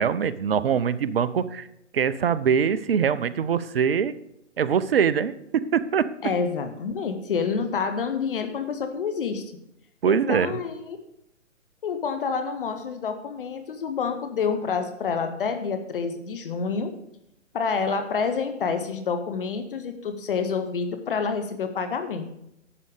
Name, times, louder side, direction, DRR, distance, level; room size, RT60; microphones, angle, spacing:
voice 1, 0.0-1.7 1.9-4.1 4.6-6.1 10.0-10.6, right 7 dB, 50° right, 15 dB, 0.6 m, -23 dB
voice 2, 6.2-9.5 10.0-11.0 11.8-16.9 17.5-22.3, left 5 dB, 45° left, 8 dB, 1.1 m, -28 dB
11.0 x 6.7 x 4.9 m, 0.81 s
figure-of-eight pair, 140°, 38 cm